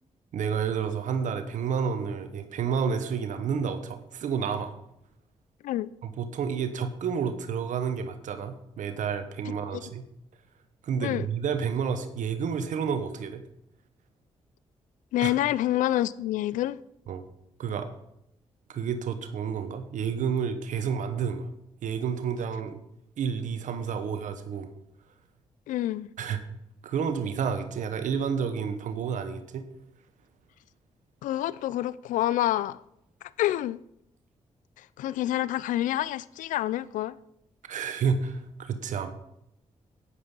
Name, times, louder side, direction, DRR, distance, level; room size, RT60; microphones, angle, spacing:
voice 1, 0.3-4.7 6.0-10.0 10.8-13.4 15.2-15.3 17.1-17.2 17.6-17.9 18.7-21.5 21.8-22.8 23.2-24.7 26.2-26.4 26.8-29.6 37.6-39.1, right 6 dB, 80° right, 1.1 m, -30 dB
voice 2, 9.5-9.8 11.0-11.3 15.1-16.8 25.7-26.1 31.2-32.8 33.4-33.8 34.8-37.2, left 14 dB, 85° left, 0.4 m, -28 dB
10.0 x 9.6 x 5.4 m
supercardioid pair, 50°, 13 cm